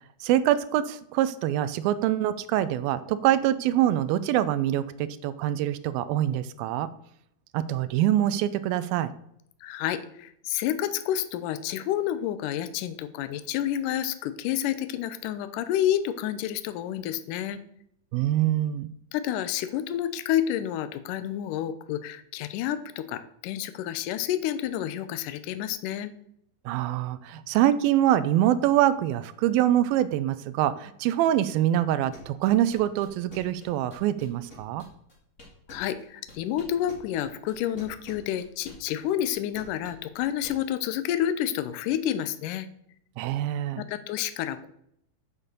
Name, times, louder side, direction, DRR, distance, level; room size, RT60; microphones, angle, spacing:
voice 1, 0.2-6.9 7.5-9.1 18.1-18.9 26.7-34.8 43.2-43.8, right 12 dB, 80° right, 15 dB, 2.3 m, -24 dB
voice 2, 9.6-17.6 19.1-26.1 35.7-42.7 43.8-44.7, left 11 dB, 75° left, 12 dB, 2.0 m, -29 dB
sound 1, 32.1-36.0 36.3-40.5, left 2 dB, 25° left, 2.1 m, -48 dB
7.4 x 6.6 x 6.7 m, 0.74 s
omnidirectional pair, 4.3 m